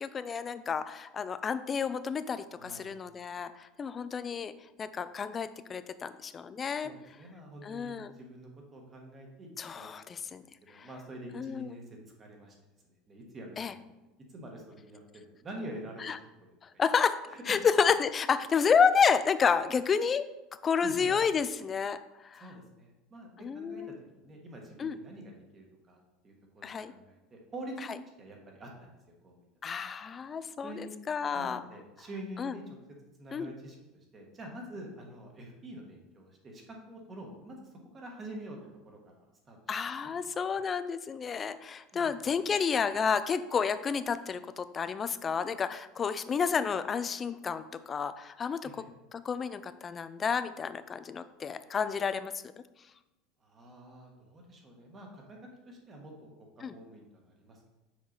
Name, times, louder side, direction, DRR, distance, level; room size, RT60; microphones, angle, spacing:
voice 1, 0.0-4.5 4.8-6.9 7.6-8.1 9.6-10.4 10.7-10.9 11.3-11.8 13.6-13.7 16.0-16.2 16.8-17.2 17.5-20.2 20.6-22.0 22.2-22.4 23.4-24.0 24.8-25.0 26.6-26.9 29.6-31.6 32.4-32.5 33.3-33.5 39.7-48.7 49.1-52.3 56.6-56.7, left 6 dB, 25° left, 13 dB, 0.3 m, -30 dB
voice 2, 6.8-9.5 9.7-10.3 10.7-12.5 12.8-13.9 14.3-16.5 16.7-16.8 17.3-17.6 20.8-21.1 22.4-23.3 23.5-27.9 28.2-29.0 29.2-29.5 30.6-30.9 31.3-32.6 33.2-33.8 34.1-37.6 37.9-38.6 38.8-39.6 41.9-42.1 48.6-48.9 53.4-56.3 56.6-57.7, right 1 dB, 25° right, 1 dB, 1.3 m, -46 dB
6.2 x 4.5 x 4.0 m, 0.99 s
supercardioid pair, 145°, 0 cm